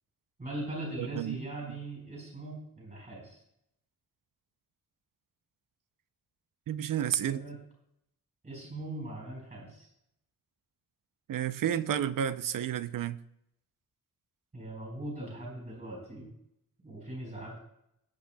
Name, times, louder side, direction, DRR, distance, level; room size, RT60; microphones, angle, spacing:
voice 1, 0.4-3.4 7.2-7.6 8.4-9.9 14.5-16.3 16.8-17.6, right 1 dB, 25° right, 4.5 m, -40 dB
voice 2, 1.0-1.4 6.7-7.4 11.3-13.2, right 10 dB, 75° right, 0.6 m, -31 dB
19.5 x 8.6 x 2.3 m
wide cardioid pair, 150°, 33 cm